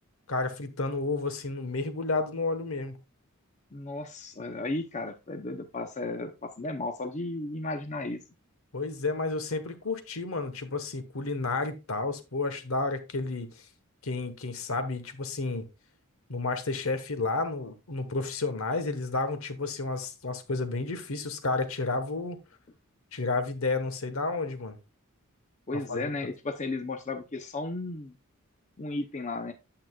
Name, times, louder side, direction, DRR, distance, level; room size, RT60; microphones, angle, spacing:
voice 1, 0.3-3.0 8.7-13.5 14.0-15.6 16.3-22.4 23.1-24.8 25.7-26.1, left 3 dB, 65° left, 1.2 m, -31 dB
voice 2, 3.7-8.2 25.7-28.2 28.8-29.5, left 2 dB, 35° left, 0.7 m, -34 dB
8.8 x 7.6 x 2.3 m
head